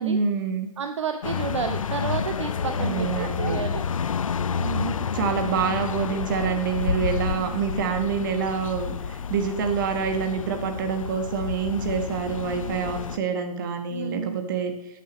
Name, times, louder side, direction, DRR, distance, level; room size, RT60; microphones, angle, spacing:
voice 1, 0.0-0.7 2.8-3.6 5.1-8.9 9.3-14.7, right 6 dB, 35° right, 6 dB, 1.4 m, -26 dB
voice 2, 0.8-3.8 4.6-5.1 13.9-14.4, right 6 dB, 50° right, 7 dB, 0.8 m, -31 dB
sound 1, 1.2-13.2, left 6 dB, 60° left, 0.5 m, -30 dB
12.5 x 9.6 x 3.1 m, 0.90 s
figure-of-eight pair, 145°, 19 cm